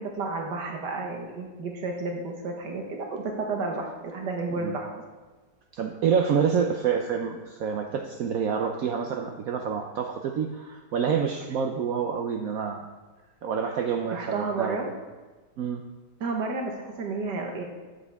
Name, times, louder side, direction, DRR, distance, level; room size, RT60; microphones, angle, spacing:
voice 1, 0.0-5.0 14.1-14.9 16.2-17.6, right 3 dB, 85° right, 1 dB, 1.9 m, -31 dB
voice 2, 5.7-12.9 13.4-14.8 15.6-15.8, right 7 dB, 65° right, 3 dB, 1.0 m, -27 dB
12.0 x 7.6 x 3.5 m, 1.3 s
omnidirectional pair, 1.8 m